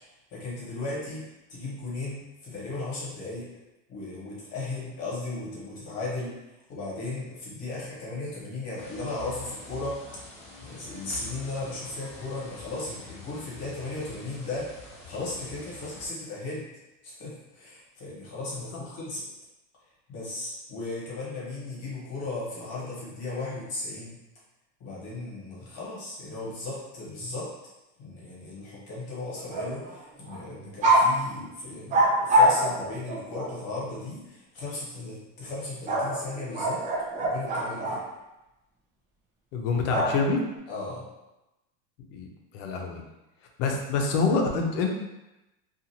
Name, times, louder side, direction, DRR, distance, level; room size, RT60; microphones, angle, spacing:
voice 1, 0.3-1.2 1.5-3.5 3.9-6.3 6.7-10.0 10.6-14.7 15.1-16.6 17.0-19.2 20.1-24.2 24.8-27.5 28.0-36.8 37.2-38.0 40.7-41.0 43.7-43.8, left 2 dB, 40° left, -6 dB, 1.2 m, -36 dB
sound 1, 8.8-16.1, left 4 dB, 15° left, 0.7 m, -46 dB
sound 2, 29.4-30.0 30.3-30.4 30.8-31.1 31.9-33.5 35.9-38.0 39.9-40.5, right 1 dB, 20° right, 0.4 m, -24 dB
voice 2, 39.5-40.4 42.1-42.3 42.5-43.0 43.6-44.9, left 4 dB, 75° left, 2 dB, 0.7 m, -26 dB
2.5 x 2.5 x 2.8 m, 0.96 s
supercardioid pair, 140°, 38 cm